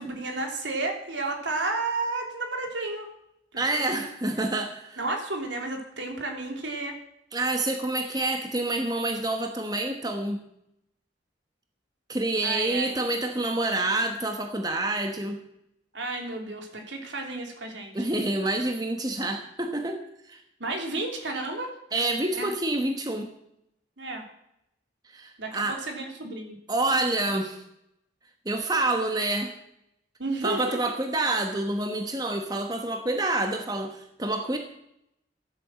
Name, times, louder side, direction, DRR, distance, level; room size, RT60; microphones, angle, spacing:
voice 1, 0.0-3.1 3.5-4.1 4.3-4.6 5.0-7.0 12.4-12.9 15.9-18.1 20.6-21.7 22.4-22.5 24.0-24.3 25.4-26.6 30.2-30.9, right 2 dB, 75° right, 3 dB, 2.9 m, -32 dB
voice 2, 3.6-5.0 7.3-10.4 12.1-15.4 17.9-20.0 20.3-20.4 21.9-23.3 25.1-25.8 26.7-27.6 28.4-29.5 30.4-34.6, right 2 dB, 20° right, 5 dB, 1.2 m, -27 dB
14.0 x 8.8 x 7.6 m, 0.78 s
head